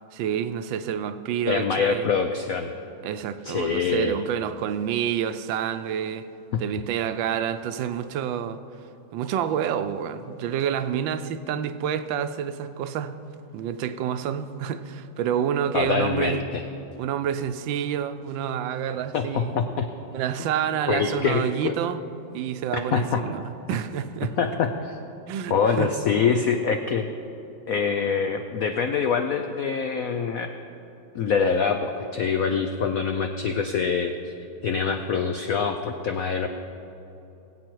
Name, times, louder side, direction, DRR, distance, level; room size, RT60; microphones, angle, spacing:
voice 1, 0.1-2.1 3.0-6.3 6.6-8.6 9.1-13.2 13.5-16.4 17.0-19.5 20.1-22.0 22.3-23.4 23.7-24.4 25.3-25.9, right 9 dB, 75° right, 10 dB, 1.3 m, -28 dB
voice 2, 1.5-2.7 3.4-4.1 6.5-6.6 15.7-16.6 19.1-19.9 20.9-21.7 22.7-23.2 24.4-25.0 25.5-27.1 27.7-30.5 31.1-34.3 34.6-36.5, left 6 dB, 85° left, 6 dB, 0.7 m, -25 dB
21.0 x 8.4 x 4.6 m, 2.9 s
omnidirectional pair, 2.2 m